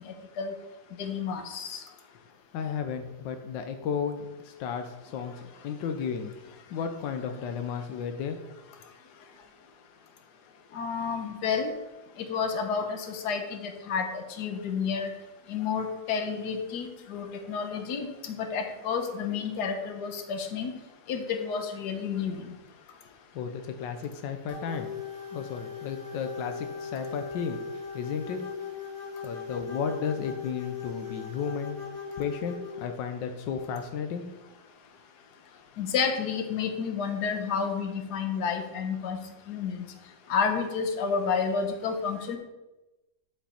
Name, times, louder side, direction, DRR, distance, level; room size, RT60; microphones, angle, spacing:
voice 1, 1.0-1.8 10.7-11.7 12.2-15.1 15.5-20.7 21.1-22.4 35.8-39.8 40.3-42.4, left 6 dB, 65° left, 5 dB, 1.4 m, -30 dB
voice 2, 2.5-5.3 5.6-6.3 6.7-8.4 23.3-24.9 25.3-27.6 27.9-28.4 29.2-31.8 32.2-34.3, left 6 dB, 85° left, 6 dB, 1.3 m, -33 dB
sound 1, 24.5-32.9, left 6 dB, 40° right, 2.2 m, -39 dB
8.5 x 5.5 x 4.2 m, 1.1 s
omnidirectional pair, 1.9 m